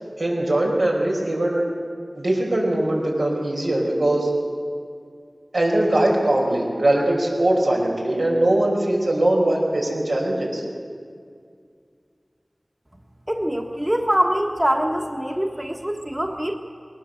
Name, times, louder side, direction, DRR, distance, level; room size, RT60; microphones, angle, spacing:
voice 1, 0.2-1.6 2.1-4.3 5.5-10.6, right 1 dB, 80° right, -2 dB, 5.2 m, -21 dB
voice 2, 13.3-16.6, equal, 15° right, 2 dB, 1.5 m, -23 dB
21.0 x 18.5 x 7.8 m, 2.2 s
wide cardioid pair, 45°, 0 cm